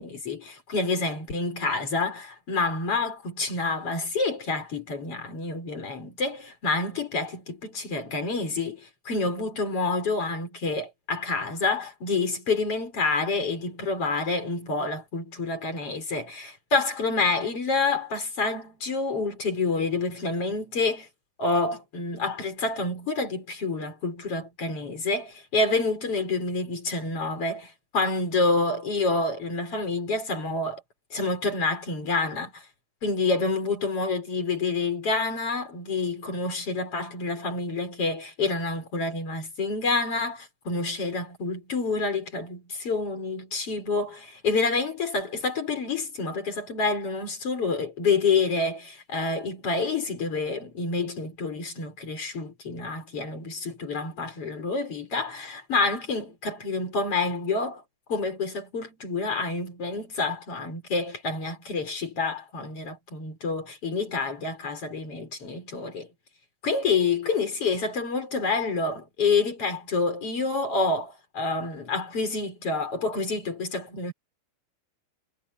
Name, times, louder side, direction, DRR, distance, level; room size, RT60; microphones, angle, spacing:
voice 1, 0.0-21.1 21.4-30.8 31.1-32.7 33.0-57.8 58.1-66.1 66.6-74.1, left 3 dB, 30° left, 6.0 m, -28 dB
omnidirectional pair, 5.8 m